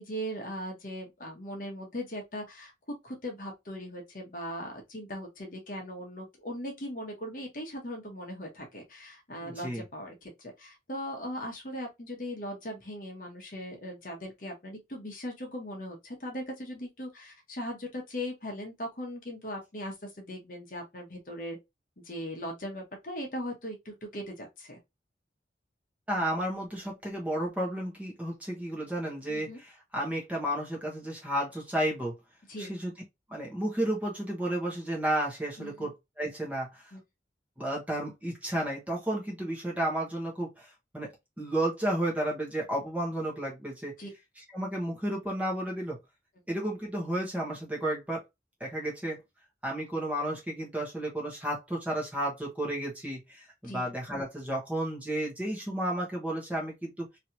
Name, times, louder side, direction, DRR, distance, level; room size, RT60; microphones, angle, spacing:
voice 1, 0.0-2.7 3.0-21.6 22.0-24.8 29.3-29.6 32.5-32.7 35.6-35.9 36.9-37.0 44.0-44.1 53.6-53.9, equal, 50° left, 1.1 m, -39 dB
voice 2, 9.4-9.8 26.1-32.1 32.6-32.9 33.3-36.8 37.6-41.1 41.4-43.9 44.4-46.0 46.5-48.2 48.6-49.2 49.6-57.1, right 1 dB, 10° right, 1.1 m, -32 dB
3.2 x 2.8 x 2.7 m
head